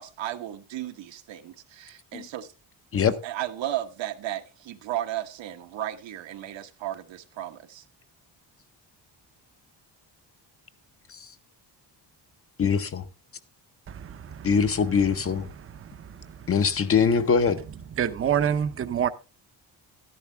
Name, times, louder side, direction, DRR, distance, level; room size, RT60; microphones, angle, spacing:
voice 1, 0.0-2.5 3.2-7.8, right 12 dB, 80° right, 1.3 m, -34 dB
voice 2, 12.6-13.0 14.4-15.5 16.5-17.6, left 6 dB, 30° left, 0.6 m, -22 dB
voice 3, 13.9-14.6 15.5-16.5 17.9-19.1, right 8 dB, 30° right, 0.6 m, -28 dB
12.5 x 10.5 x 3.3 m
wide cardioid pair, 170°, 44 cm